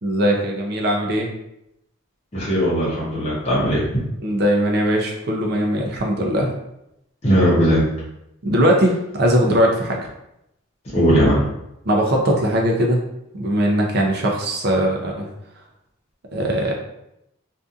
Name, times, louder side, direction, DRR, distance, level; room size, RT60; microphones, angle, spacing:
voice 1, 0.0-1.3 4.2-6.5 8.4-10.0 11.9-13.0 13.3-15.3 16.3-16.7, equal, 50° right, 0 dB, 0.5 m, -20 dB
voice 2, 2.3-3.8 7.2-7.9 10.9-11.4, equal, 30° left, -8 dB, 0.7 m, -18 dB
2.6 x 2.4 x 2.4 m, 0.84 s
head